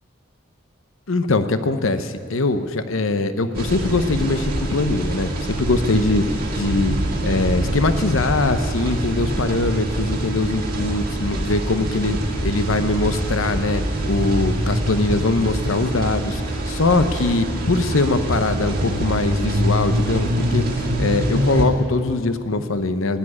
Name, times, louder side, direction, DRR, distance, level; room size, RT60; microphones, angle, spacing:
voice 1, 1.1-6.2 6.5-7.0 7.2-12.2 12.4-16.4 16.7-20.6 21.0-23.2, left 2 dB, 75° left, 10 dB, 0.8 m, -22 dB
sound 1, 3.6-21.7, right 1 dB, 45° right, 1.8 m, -25 dB
sound 2, 9.8-15.5, equal, 25° left, 1.1 m, -31 dB
16.0 x 8.7 x 9.5 m, 2.3 s
head